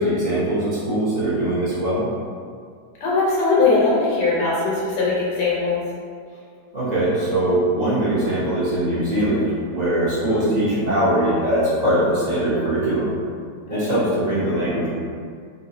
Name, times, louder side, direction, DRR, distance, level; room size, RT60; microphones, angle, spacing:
voice 1, 0.0-2.1 6.7-13.1 13.7-14.9, right 1 dB, 35° right, -10 dB, 0.7 m, -21 dB
voice 2, 3.0-5.8 10.3-10.5 13.7-14.2, left 3 dB, 80° left, -6 dB, 1.6 m, -20 dB
3.8 x 2.2 x 2.7 m, 2.1 s
omnidirectional pair, 2.0 m